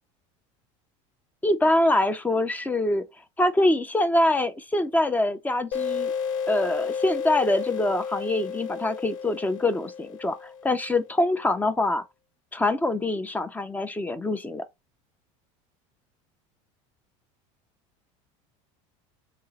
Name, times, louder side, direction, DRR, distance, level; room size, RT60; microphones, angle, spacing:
voice 1, 1.4-3.0 3.4-6.1 6.5-12.0 12.5-14.6, left 1 dB, 10° left, 0.5 m, -24 dB
sound 1, 5.7-11.0, left 6 dB, 75° left, 0.5 m, -32 dB
3.7 x 2.1 x 3.9 m
supercardioid pair, 115°, 17 cm